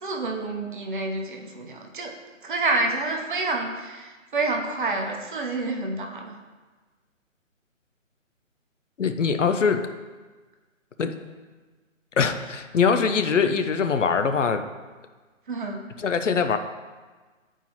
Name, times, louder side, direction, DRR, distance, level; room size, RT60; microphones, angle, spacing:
voice 1, 0.0-2.1 2.4-6.3 15.5-15.8, right 3 dB, 40° right, 1 dB, 0.9 m, -28 dB
voice 2, 9.0-9.9 11.0-11.1 12.2-14.6 16.0-16.6, left 5 dB, 65° left, 8 dB, 0.6 m, -22 dB
10.0 x 4.5 x 2.9 m, 1.3 s
figure-of-eight pair, 145°, 39 cm